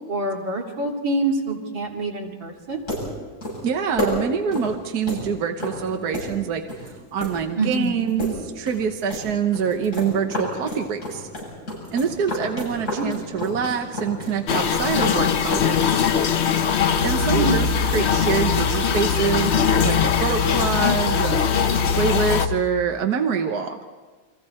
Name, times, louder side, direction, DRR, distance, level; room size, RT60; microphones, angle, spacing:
voice 1, 0.1-2.8 7.6-8.1 13.0-13.1 17.3-17.6, right 2 dB, 75° right, 0 dB, 3.4 m, -26 dB
sound 1, 2.6-22.5, left 1 dB, 40° left, 8.5 m, -33 dB
voice 2, 3.6-11.3 11.9-16.0 17.0-21.4 22.0-23.8, right 6 dB, 60° right, 5 dB, 1.5 m, -25 dB
sound 2, 14.5-22.5, left 8 dB, 55° left, 0.7 m, -22 dB
sound 3, 16.8-22.6, left 3 dB, 70° left, 4.7 m, -26 dB
29.5 x 24.5 x 4.3 m, 1.4 s
omnidirectional pair, 2.1 m